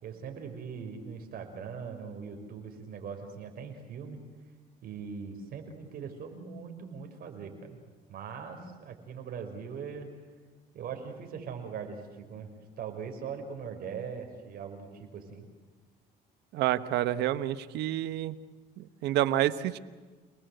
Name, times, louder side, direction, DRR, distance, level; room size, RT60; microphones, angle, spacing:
voice 1, 0.0-4.2 4.8-7.8 8.1-10.1 10.7-15.5, right 6 dB, 60° right, 5 dB, 5.4 m, -41 dB
voice 2, 16.5-18.4 18.8-19.8, right 13 dB, 85° right, 13 dB, 1.2 m, -28 dB
28.5 x 20.0 x 7.9 m, 1.4 s
cardioid pair, 110°, 17 cm